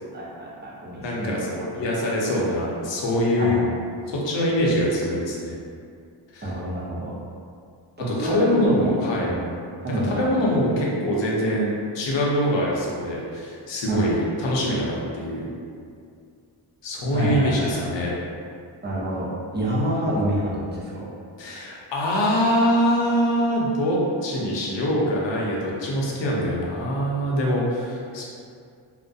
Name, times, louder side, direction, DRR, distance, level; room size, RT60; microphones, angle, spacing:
voice 1, 0.1-1.6 3.4-3.7 6.4-7.1 8.0-8.9 9.3-9.4 9.8-10.4 13.9-14.1 17.1-17.7 18.8-19.3 19.5-21.1 28.1-28.2, right 1 dB, 20° right, -6 dB, 0.6 m, -27 dB
voice 2, 1.0-3.8 4.1-5.6 6.3-6.5 8.1-9.3 9.9-15.5 16.8-18.1 21.4-28.2, equal, 65° left, -4 dB, 0.7 m, -24 dB
2.3 x 2.1 x 2.6 m, 2.3 s
cardioid pair, 90°, 47 cm